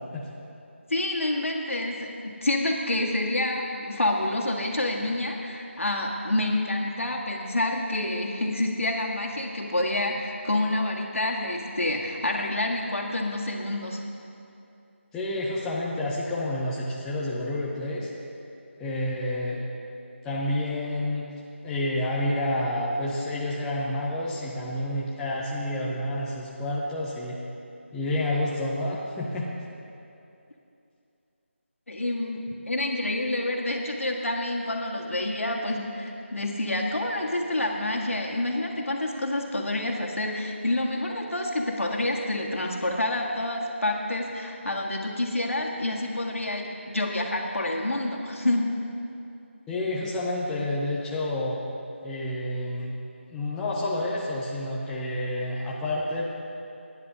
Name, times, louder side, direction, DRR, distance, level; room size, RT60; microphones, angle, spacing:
voice 1, 0.9-14.0 31.9-48.7, left 1 dB, 85° left, -1 dB, 1.7 m, -28 dB
voice 2, 15.1-18.1 18.8-19.6 20.2-21.2 21.6-27.4 27.9-29.5 49.7-51.6 52.0-52.9 53.3-56.4, left 1 dB, 5° left, -5 dB, 0.5 m, -29 dB
19.5 x 9.9 x 2.8 m, 2.7 s
figure-of-eight pair, 165°, 7 cm